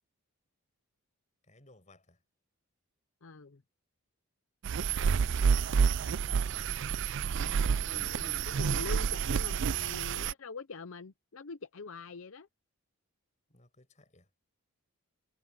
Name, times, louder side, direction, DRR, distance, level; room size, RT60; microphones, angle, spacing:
voice 1, 1.4-2.2 4.9-5.3 5.7-6.8 7.6-8.3 13.5-14.3, left 2 dB, 30° left, 5.9 m, -60 dB
voice 2, 3.2-3.6 7.9-12.5, left 4 dB, 60° left, 0.7 m, -44 dB
sound 1, 4.6-10.3, right 6 dB, 55° right, 0.4 m, -29 dB
head